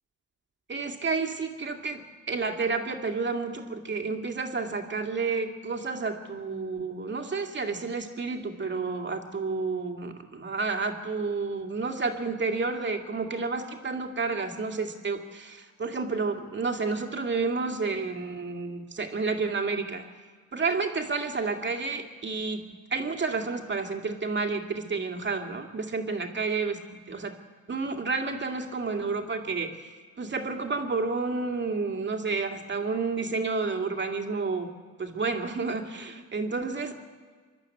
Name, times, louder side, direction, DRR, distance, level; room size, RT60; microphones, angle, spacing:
voice 1, 0.7-20.0 20.5-22.6 22.9-26.8 27.1-27.3 27.7-29.9 30.2-34.7 35.0-36.9, right 4 dB, 35° right, 4 dB, 2.4 m, -30 dB
24.5 x 12.0 x 8.6 m, 1.5 s
cardioid pair, 90°, 30 cm